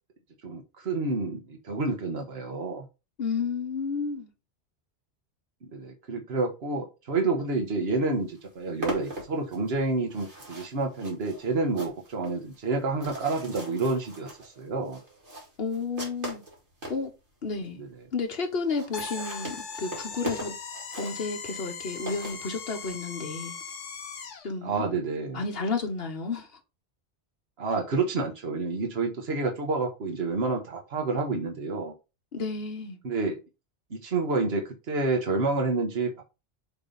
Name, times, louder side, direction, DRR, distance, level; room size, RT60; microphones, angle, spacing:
voice 1, 0.4-2.9 5.6-15.0 17.8-17.9 24.6-25.4 27.6-31.9 33.0-33.4 33.9-36.2, right 3 dB, 65° right, 1.5 m, -29 dB
voice 2, 3.2-4.3 15.6-16.4 16.9-17.1 17.4-17.8 18.1-20.6 21.0-23.5 24.4-24.8 25.3-26.5 32.3-33.0, left 4 dB, 60° left, 1.4 m, -31 dB
sound 1, 7.8-7.9 8.2-17.0 17.6-17.7 17.9-18.0 18.2-18.3 18.6-23.0, right 1 dB, 85° right, 2.7 m, -40 dB
sound 2, 18.9-24.5, left 5 dB, 90° left, 1.4 m, -39 dB
6.9 x 3.4 x 4.0 m
omnidirectional pair, 1.2 m